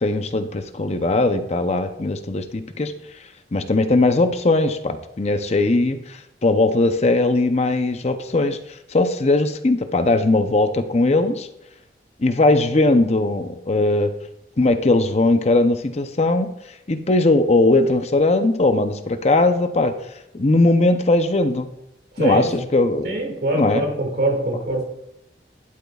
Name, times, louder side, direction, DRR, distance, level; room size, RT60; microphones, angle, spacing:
voice 1, 0.0-2.9 3.5-8.6 8.9-11.5 12.2-14.1 14.6-16.5 16.9-19.9 20.3-21.7 22.2-23.1 23.5-23.8, left 2 dB, 35° left, 8 dB, 0.6 m, -19 dB
voice 2, 22.1-22.5 23.0-24.9, right 2 dB, 60° right, 2 dB, 2.1 m, -23 dB
11.5 x 7.9 x 2.4 m, 0.84 s
head